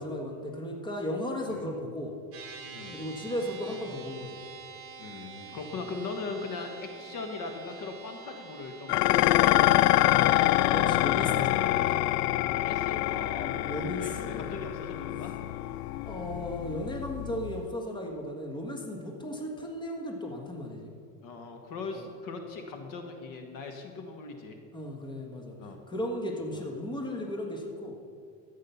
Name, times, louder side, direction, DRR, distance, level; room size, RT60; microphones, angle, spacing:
voice 1, 0.0-2.1 2.9-4.4 10.7-12.0 13.4-14.5 16.0-20.9 24.7-25.5 25.9-27.9, left 1 dB, 10° left, 0 dB, 1.5 m, -35 dB
sound 1, 2.3-15.9, right 5 dB, 30° right, 2.6 m, -48 dB
voice 2, 5.0-9.0 9.4-10.4 12.5-15.3 21.2-24.6 25.6-25.8 26.5-26.6, left 4 dB, 45° left, 4 dB, 1.5 m, -39 dB
Dishes pots and pans, 8.9-17.7, left 16 dB, 85° left, 0.6 m, -26 dB
13.5 x 8.8 x 5.7 m, 2.3 s
supercardioid pair, 140°, 46 cm